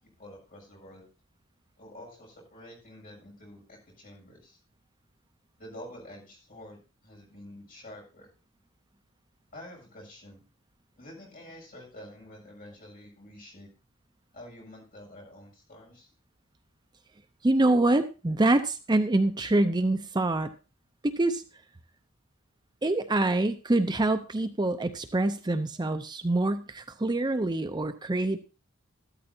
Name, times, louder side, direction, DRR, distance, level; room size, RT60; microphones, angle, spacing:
voice 1, 0.0-1.1 1.8-4.6 5.6-8.3 9.5-10.4 11.0-13.7 14.3-16.1, left 1 dB, 45° left, -2 dB, 7.3 m, -48 dB
voice 2, 17.4-20.5 21.0-21.4 22.8-28.4, right 2 dB, 20° right, 9 dB, 0.6 m, -25 dB
14.0 x 13.0 x 2.8 m, 0.32 s
head